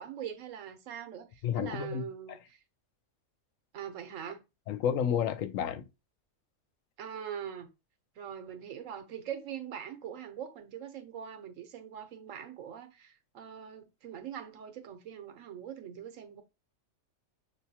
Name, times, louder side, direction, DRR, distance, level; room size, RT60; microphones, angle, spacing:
voice 1, 0.0-2.6 3.7-4.4 7.0-7.7 8.2-16.4, right 9 dB, 85° right, 1.1 m, -42 dB
voice 2, 1.4-2.0 4.7-5.8, left 8 dB, 90° left, 1.0 m, -30 dB
6.5 x 2.2 x 2.7 m
omnidirectional pair, 1.3 m